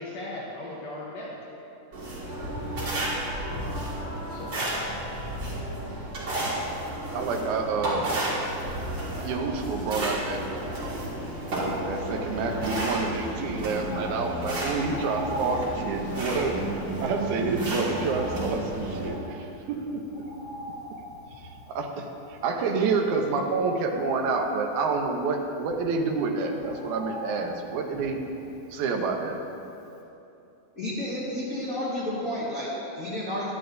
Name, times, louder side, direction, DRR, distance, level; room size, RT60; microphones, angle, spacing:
voice 1, 0.0-1.6 2.8-3.1 3.5-4.7, left 1 dB, 70° left, -4 dB, 1.8 m, -40 dB
sound 1, 1.9-19.1, right 1 dB, 40° right, 2.2 m, -32 dB
voice 2, 7.1-8.1 9.2-10.4 11.9-16.5 17.0-20.2 21.7-28.2 28.7-29.4, right 4 dB, 75° right, 3 dB, 2.1 m, -28 dB
Bird, 10.5-29.6 30.0-30.1, equal, 85° left, 0.8 m, -42 dB
voice 3, 30.7-33.5, left 1 dB, 50° left, -9 dB, 1.1 m, -31 dB
11.0 x 9.7 x 2.6 m, 2.8 s
omnidirectional pair, 3.6 m